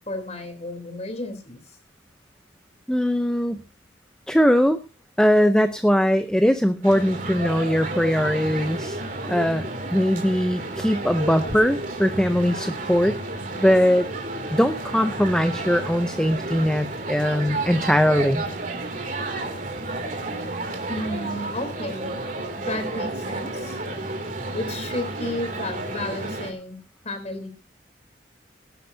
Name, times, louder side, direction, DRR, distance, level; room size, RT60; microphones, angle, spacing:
voice 1, 0.0-1.6 20.9-22.1 22.7-23.8 24.5-26.8 27.0-27.5, left 1 dB, 40° left, 8 dB, 3.7 m, -32 dB
voice 2, 2.9-3.6 4.3-4.8 5.2-9.0 9.2-9.6 9.9-13.2 13.6-14.1 14.5-18.4, equal, 5° left, 9 dB, 0.7 m, -20 dB
sound 1, 6.8-26.5, right 2 dB, 45° right, 2.9 m, -31 dB
18.5 x 12.0 x 2.8 m, 0.29 s
head